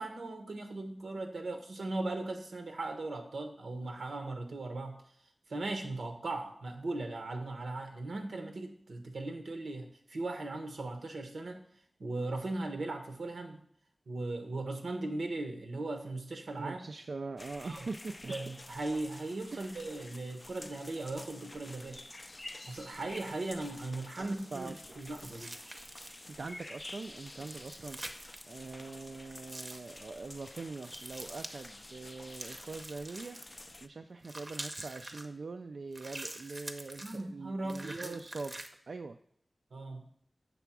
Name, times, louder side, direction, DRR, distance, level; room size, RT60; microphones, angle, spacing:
voice 1, 0.0-4.9 5.5-11.6 12.0-13.6 14.1-16.8 17.6-17.9 18.3-22.0 22.6-25.5 37.0-38.2 39.7-40.1, right 2 dB, 85° right, 5 dB, 1.0 m, -38 dB
voice 2, 16.6-18.3 19.5-19.8 24.2-25.0 26.3-38.5 38.9-39.2, right 3 dB, 70° right, 7 dB, 0.3 m, -43 dB
sound 1, 17.4-33.9, left 2 dB, 30° left, 0.3 m, -50 dB
sound 2, 25.0-26.3 27.4-28.5 29.5-29.9 30.8-31.6 32.3-33.7 34.2-35.3 35.9-37.2 37.7-38.7, right 1 dB, 35° right, 0.6 m, -45 dB
7.0 x 3.4 x 6.0 m, 0.66 s
wide cardioid pair, 80°, 0 cm